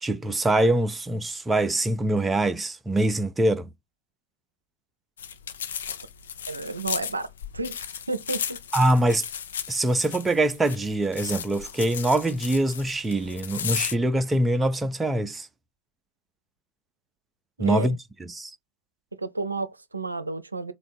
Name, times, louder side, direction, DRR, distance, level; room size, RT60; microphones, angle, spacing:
voice 1, 0.0-3.7 8.7-9.3 9.7-15.5 17.6-18.0 18.3-18.5, right 1 dB, 10° right, 0.4 m, -24 dB
sound 1, 5.2-14.0, left 8 dB, 65° left, 0.5 m, -35 dB
voice 2, 6.5-7.3 7.5-7.8 8.1-8.6 17.6-18.0 19.2-20.7, right 3 dB, 80° right, 0.5 m, -31 dB
3.4 x 2.2 x 4.3 m
figure-of-eight pair, 90°, 0 cm